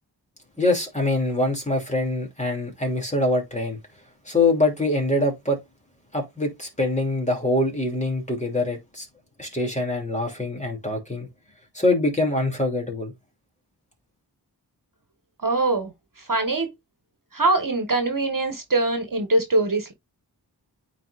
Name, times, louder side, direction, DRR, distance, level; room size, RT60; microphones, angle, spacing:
voice 1, 0.6-3.8 4.2-5.6 6.1-9.1 9.4-11.3 11.7-13.1, left 2 dB, 15° left, 3.0 m, -24 dB
voice 2, 15.4-15.9 16.3-16.7 17.3-19.9, right 2 dB, 50° right, 1.6 m, -22 dB
8.9 x 4.2 x 2.6 m
wide cardioid pair, 50°, 41 cm